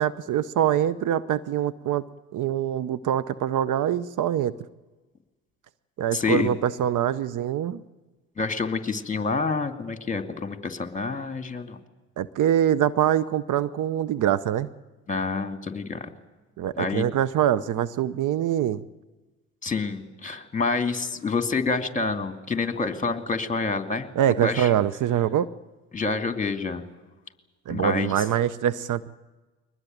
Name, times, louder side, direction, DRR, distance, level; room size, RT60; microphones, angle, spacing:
voice 1, 0.0-2.0 2.3-4.5 6.0-7.8 12.2-14.7 16.6-18.8 24.2-25.5 27.7-29.1, right 10 dB, 55° right, 16 dB, 0.8 m, -24 dB
voice 2, 6.1-6.5 8.4-11.8 15.1-16.1 16.8-17.0 19.6-24.1 24.4-24.7 25.9-26.8 27.7-28.2, left 4 dB, 20° left, 8 dB, 2.5 m, -27 dB
22.5 x 19.5 x 9.2 m, 1.2 s
hypercardioid pair, 60°, 37 cm